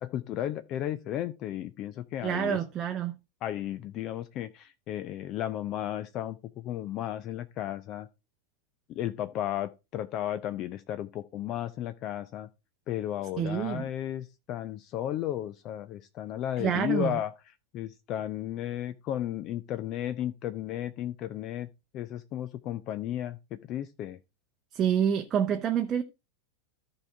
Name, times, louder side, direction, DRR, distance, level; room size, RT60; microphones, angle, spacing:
voice 1, 0.0-2.6 3.4-8.1 8.9-12.5 12.9-17.3 17.7-21.7 21.9-24.2, left 12 dB, 35° left, 0.5 m, -34 dB
voice 2, 2.2-3.2 13.4-13.9 16.6-17.2 24.7-26.0, right 9 dB, 25° right, 0.7 m, -27 dB
14.0 x 4.8 x 3.4 m
figure-of-eight pair, 90°, 0 cm